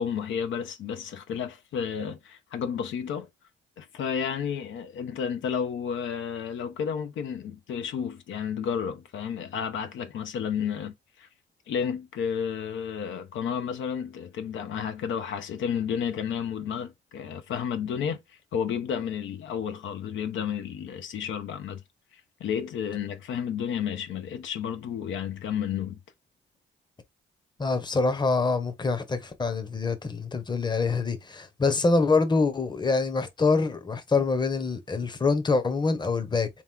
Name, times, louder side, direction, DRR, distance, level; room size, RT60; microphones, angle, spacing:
voice 1, 0.0-3.3 3.8-11.3 11.7-21.8 22.1-26.0, left 7 dB, 75° left, 0.8 m, -32 dB
voice 2, 27.6-36.6, left 3 dB, 20° left, 0.9 m, -25 dB
3.4 x 3.1 x 3.6 m
cardioid pair, 90°, 20 cm